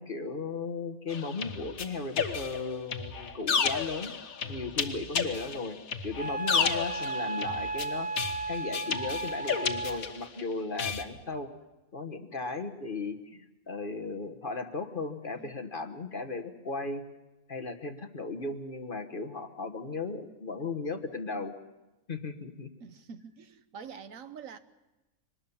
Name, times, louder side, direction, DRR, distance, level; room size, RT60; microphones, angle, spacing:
voice 1, 0.0-4.2 4.5-5.8 6.0-8.1 8.5-11.5 11.9-17.0 17.5-21.5 22.1-22.7, left 3 dB, 40° left, 1.3 m, -36 dB
sound 1, 1.1-10.4 10.8-11.0, left 6 dB, 75° left, 1.7 m, -32 dB
Wind instrument woodwind instrument, 6.2-10.0, right 3 dB, 10° left, 1.7 m, -34 dB
voice 2, 22.8-24.6, right 6 dB, 70° right, 1.4 m, -46 dB
24.5 x 19.5 x 7.1 m
omnidirectional pair, 1.5 m